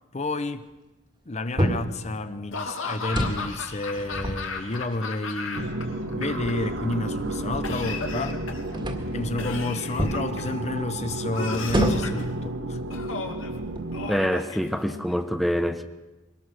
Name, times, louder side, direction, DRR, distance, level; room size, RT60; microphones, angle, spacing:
voice 1, 0.1-0.7 1.3-5.8 6.1-8.4 9.1-12.8, left 2 dB, 35° left, 0.7 m, -30 dB
sound 1, 1.6-2.0 3.0-3.5 3.9-5.0 5.7-5.8 6.4-8.4 8.7-9.2 10.0-10.3 11.7-12.3 13.0-13.1 13.6-14.1, equal, 25° right, 1.9 m, -28 dB
Laughter / Cough, 2.5-5.8 6.1-6.9 7.6-8.7 9.4-10.6 11.3-12.3 12.9-13.5 13.9-15.1, left 4 dB, 80° left, 2.4 m, -35 dB
sound 2, 5.5-14.1, right 1 dB, 90° right, 1.7 m, -32 dB
voice 2, 14.1-15.8, equal, ahead, 0.8 m, -25 dB
22.5 x 19.0 x 6.4 m
head